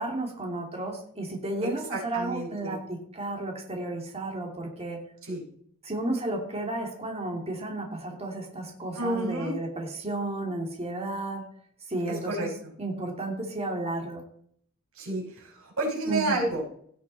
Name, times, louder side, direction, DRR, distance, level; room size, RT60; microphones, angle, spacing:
voice 1, 0.0-5.0 5.8-11.4 11.9-12.5 12.8-14.2 16.1-16.4, right 2 dB, 30° right, 0 dB, 2.6 m, -33 dB
voice 2, 1.9-2.8 5.2-5.4 9.0-9.5 12.1-12.5 15.0-16.6, right 2 dB, 75° right, -2 dB, 5.7 m, -30 dB
17.0 x 6.9 x 4.1 m, 0.62 s
head